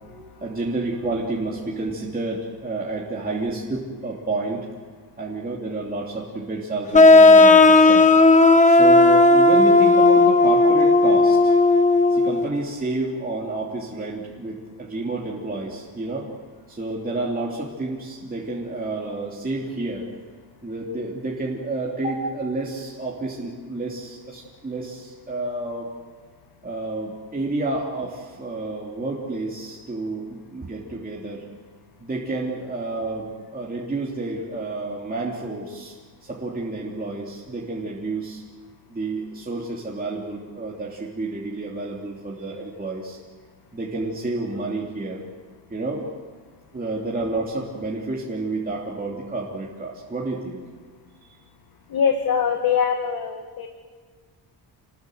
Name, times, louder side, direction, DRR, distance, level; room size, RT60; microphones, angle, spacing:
voice 1, 0.1-4.7 5.2-8.1 8.6-11.6 12.1-16.3 16.7-20.1 20.6-25.9 26.6-31.4 32.0-35.9 36.2-38.4 38.9-43.2 43.7-45.2 45.7-46.1 46.7-50.6, right 2 dB, 20° right, -3 dB, 2.9 m, -30 dB
sound 1, 6.9-12.5, left 2 dB, 15° left, 1.0 m, -13 dB
voice 2, 51.9-53.7, left 7 dB, 55° left, 4 dB, 2.0 m, -23 dB
29.0 x 19.5 x 7.8 m, 1.5 s
wide cardioid pair, 165°, 43 cm